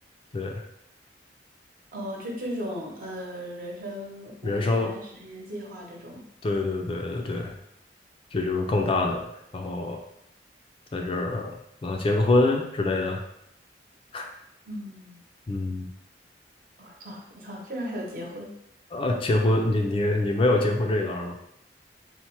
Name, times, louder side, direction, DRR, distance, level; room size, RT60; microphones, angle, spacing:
voice 1, 0.3-0.6 4.4-4.9 6.4-7.6 8.3-10.0 10.9-13.2 14.1-14.3 15.5-15.9 18.9-21.4, left 2 dB, 30° left, 2 dB, 0.4 m, -25 dB
voice 2, 1.9-6.2 14.7-15.2 16.8-18.5, equal, 50° right, -2 dB, 1.0 m, -37 dB
4.1 x 2.1 x 4.5 m, 0.79 s
head